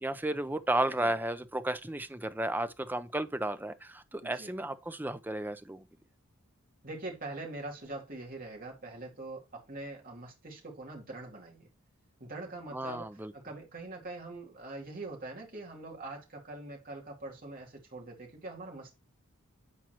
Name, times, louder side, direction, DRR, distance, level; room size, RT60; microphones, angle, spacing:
voice 1, 0.0-5.8 12.7-13.3, right 1 dB, 10° right, 0.4 m, -33 dB
voice 2, 4.2-4.5 6.8-11.7 12.2-19.0, right 2 dB, 40° right, 2.5 m, -43 dB
8.5 x 4.5 x 2.9 m
head